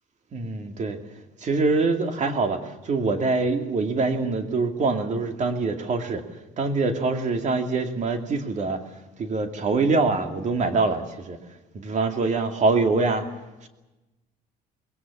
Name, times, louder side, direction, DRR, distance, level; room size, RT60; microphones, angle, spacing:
voice 1, 0.3-1.0 1.4-6.2 6.6-8.8 9.2-11.4 11.7-13.3, right 3 dB, 45° right, 6 dB, 2.5 m, -24 dB
21.0 x 17.5 x 8.5 m, 1.1 s
cardioid pair, 110°, 17 cm